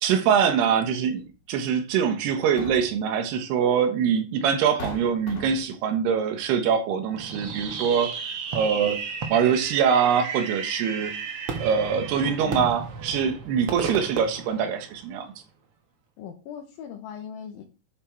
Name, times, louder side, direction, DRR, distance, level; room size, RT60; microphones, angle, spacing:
voice 1, 0.0-8.2 8.5-9.0 9.3-11.1 11.6-15.3, right 7 dB, 85° right, 3.3 m, -24 dB
sound 1, 1.2-1.3 2.3-3.1 4.1-4.2 4.8-5.8, left 3 dB, 50° left, 1.3 m, -38 dB
Fireworks, 7.2-15.3, right 5 dB, 65° right, 1.4 m, -34 dB
voice 2, 12.4-12.8 16.2-17.6, left 8 dB, 70° left, 2.7 m, -39 dB
11.0 x 5.3 x 4.5 m
omnidirectional pair, 4.6 m